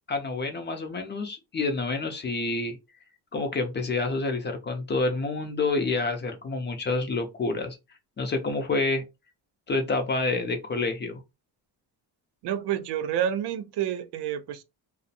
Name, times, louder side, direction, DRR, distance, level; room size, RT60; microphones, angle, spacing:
voice 1, 0.1-2.8 3.3-7.8 8.2-9.0 9.7-11.2, left 3 dB, 25° left, 0.4 m, -28 dB
voice 2, 12.4-14.6, right 10 dB, 70° right, 0.5 m, -29 dB
2.4 x 2.0 x 2.6 m
cardioid pair, 140°, 42 cm